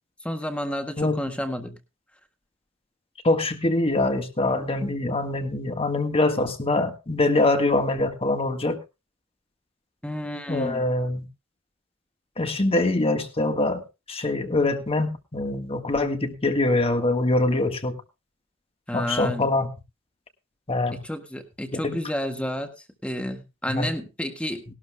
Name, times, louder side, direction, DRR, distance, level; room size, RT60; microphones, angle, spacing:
voice 1, 0.2-1.8 10.0-10.8 18.9-19.5 21.0-22.7 23.0-24.6, equal, 5° left, 6 dB, 1.6 m, -30 dB
voice 2, 3.2-8.8 10.5-11.3 12.4-13.8 14.1-18.0 18.9-19.7 20.7-21.0 21.8-22.0 23.7-23.9, left 2 dB, 30° left, 7 dB, 1.6 m, -24 dB
19.0 x 12.5 x 2.3 m, 0.26 s
head